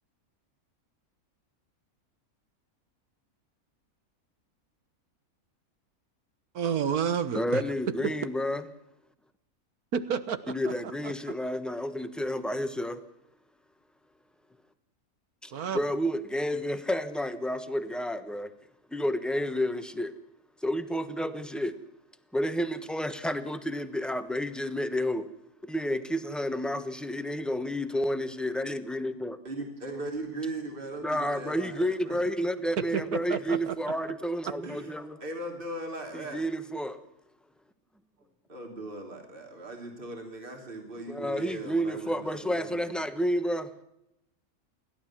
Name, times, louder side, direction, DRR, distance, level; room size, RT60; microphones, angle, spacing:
voice 1, 6.5-7.6 8.0-8.1 9.9-10.7 11.0-11.1 15.5-15.8 32.9-33.7, right 7 dB, 85° right, 1.7 m, -30 dB
voice 2, 7.3-8.6 10.5-13.0 15.4-18.5 18.9-20.1 20.6-21.8 22.3-25.3 25.6-29.4 31.0-35.2 36.1-37.0 41.1-43.7, equal, ahead, 1.0 m, -30 dB
voice 3, 29.4-32.2 34.6-34.9 35.2-36.4 38.5-42.9, right 2 dB, 35° right, 3.3 m, -39 dB
29.0 x 12.0 x 7.4 m
omnidirectional pair, 1.5 m